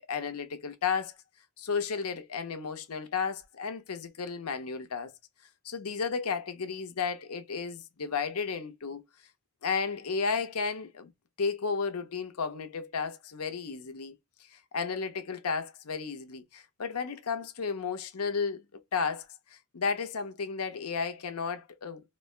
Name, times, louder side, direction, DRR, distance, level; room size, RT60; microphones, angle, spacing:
voice 1, 0.1-1.1 1.6-5.1 5.6-9.0 9.6-11.1 11.4-14.1 14.7-18.6 18.9-22.0, left 5 dB, 85° left, 0.8 m, -33 dB
4.2 x 2.2 x 2.4 m
head